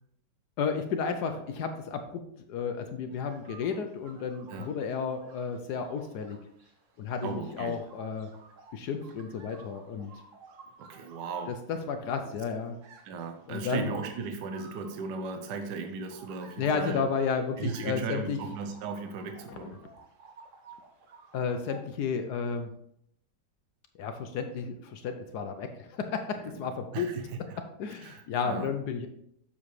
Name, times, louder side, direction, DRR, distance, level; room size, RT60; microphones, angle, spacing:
voice 1, 0.6-6.4 7.0-8.3 8.7-10.1 11.7-12.7 13.5-13.9 16.6-18.4 19.5-19.7 21.3-22.7 24.0-27.1 27.8-29.1, left 6 dB, 70° left, 6 dB, 1.1 m, -32 dB
sound 1, 3.1-21.8, right 4 dB, 50° right, 1.2 m, -54 dB
voice 2, 7.2-7.8 10.8-11.6 13.0-17.0 17.6-19.8 26.4-27.6 27.9-28.7, right 5 dB, 70° right, 6 dB, 1.3 m, -37 dB
7.4 x 7.0 x 3.2 m, 0.72 s
omnidirectional pair, 2.0 m